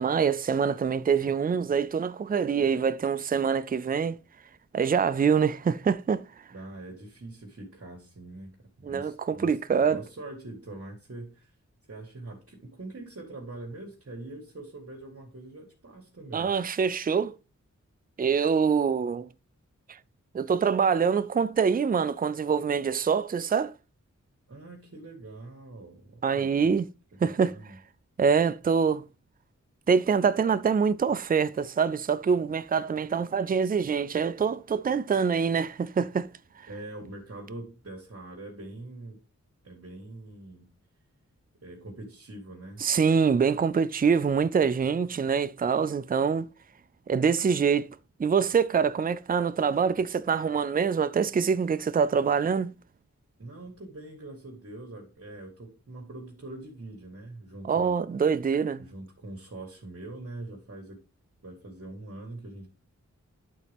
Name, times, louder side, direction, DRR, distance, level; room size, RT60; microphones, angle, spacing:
voice 1, 0.0-4.2 4.7-6.2 8.8-10.0 16.3-17.4 18.2-19.3 20.3-23.7 26.2-26.8 27.2-27.6 28.2-29.0 29.9-36.3 42.8-46.5 47.1-47.9 48.2-52.7 57.6-58.8, right 6 dB, 30° right, 0.4 m, -25 dB
voice 2, 6.5-11.5 11.9-16.5 24.5-26.8 27.2-27.8 36.7-39.2 39.6-40.8 41.6-42.8 53.4-58.0 58.8-61.0 61.4-62.7, right 2 dB, 55° right, 2.0 m, -43 dB
11.0 x 4.1 x 3.5 m
wide cardioid pair, 75°, 29 cm